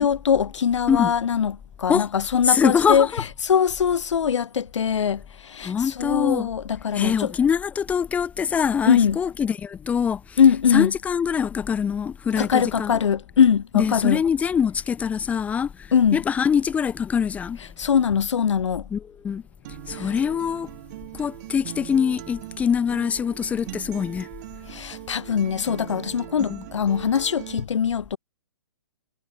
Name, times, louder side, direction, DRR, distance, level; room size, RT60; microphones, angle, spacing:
voice 1, 0.0-1.5 1.8-3.1 3.4-7.3 8.9-9.2 10.4-10.9 12.3-14.2 15.9-16.2 17.8-18.8 20.0-20.1 24.7-28.2, left 7 dB, 80° left, 1.2 m, -22 dB
voice 2, 2.4-3.3 5.6-6.5 6.9-13.0 13.7-17.6 18.9-19.4 19.9-20.7 21.1-24.3 26.5-26.7, left 7 dB, 10° left, 0.8 m, -24 dB
Acoustic guitar, 19.6-27.6, right 17 dB, 40° right, 2.8 m, -40 dB
hypercardioid pair, 155°, 15 cm